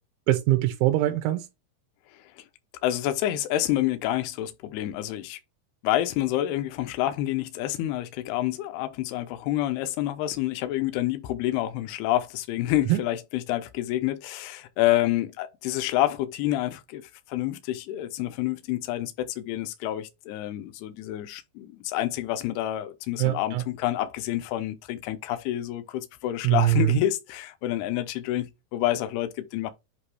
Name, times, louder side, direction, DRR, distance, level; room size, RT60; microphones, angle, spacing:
voice 1, 0.3-1.5 12.9-13.0 23.2-23.6 26.4-27.0, right 15 dB, 85° right, 3.2 m, -22 dB
voice 2, 2.8-5.4 5.8-17.0 17.3-29.7, left 14 dB, 80° left, 2.5 m, -28 dB
8.5 x 2.8 x 4.7 m
omnidirectional pair, 5.5 m